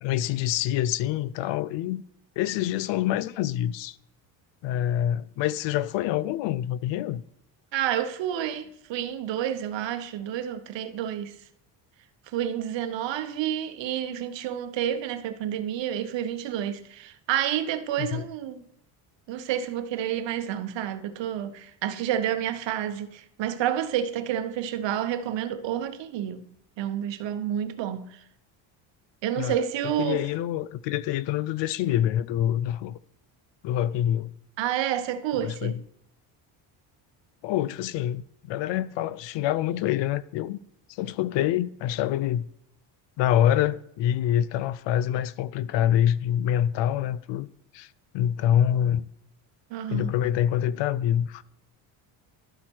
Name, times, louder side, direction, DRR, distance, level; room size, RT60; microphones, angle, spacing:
voice 1, 0.0-2.0 2.4-4.0 4.6-7.2 18.0-18.2 29.4-33.0 33.6-34.3 35.4-35.8 37.4-40.6 40.9-42.5 43.2-47.5 47.7-49.1 49.9-51.4, left 11 dB, 60° left, 0.5 m, -26 dB
voice 2, 7.7-11.3 12.3-18.6 19.3-26.4 26.8-28.2 29.2-30.2 34.6-35.8 49.7-50.1, right 10 dB, 60° right, 0.9 m, -29 dB
12.0 x 4.2 x 4.5 m
supercardioid pair, 85°, 50 cm